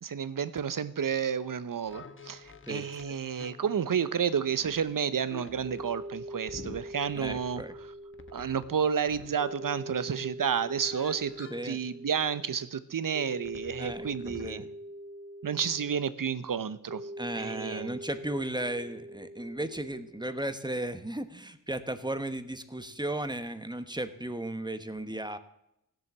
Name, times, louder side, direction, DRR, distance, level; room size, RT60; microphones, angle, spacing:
voice 1, 0.0-7.6 8.3-14.6 15.4-17.0 17.4-18.0, right 7 dB, 70° right, 14 dB, 0.8 m, -31 dB
sound 1, 1.8-4.2 4.6-9.4 10.7-12.0 13.4-14.7, left 3 dB, 35° left, 1.1 m, -49 dB
sound 2, 5.6-20.4, right 1 dB, 45° right, 2.0 m, -44 dB
voice 2, 7.1-7.7 11.5-11.8 13.8-14.7 17.2-25.4, right 1 dB, 10° right, 10 dB, 1.1 m, -35 dB
16.0 x 7.8 x 7.3 m, 0.82 s
cardioid pair, 60°, 34 cm